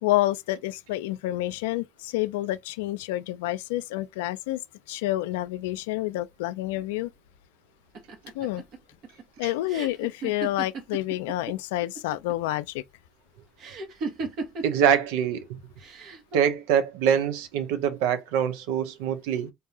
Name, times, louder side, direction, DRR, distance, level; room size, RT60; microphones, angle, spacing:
voice 1, 0.0-4.6 4.9-7.1 8.3-8.6 9.4-12.8, left 16 dB, 85° left, 0.3 m, -28 dB
sound 1, 7.9-11.5 11.8-12.5 13.6-14.8 15.8-16.4, right 4 dB, 65° right, 1.2 m, -36 dB
voice 2, 14.6-15.6 16.3-19.5, right 8 dB, 80° right, 0.7 m, -24 dB
3.7 x 2.6 x 2.7 m
hypercardioid pair, 70°, 0 cm